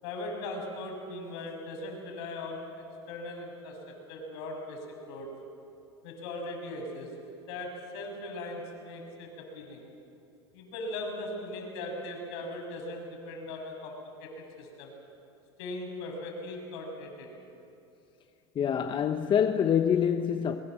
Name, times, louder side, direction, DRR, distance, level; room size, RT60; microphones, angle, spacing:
voice 1, 0.0-5.3 6.0-7.1 7.5-9.8 10.5-14.9 15.6-17.3, left 2 dB, 65° left, 6.6 m, -39 dB
voice 2, 18.6-20.6, left 8 dB, 35° left, 1.0 m, -25 dB
23.0 x 23.0 x 7.6 m
hypercardioid pair, 100°, 15 cm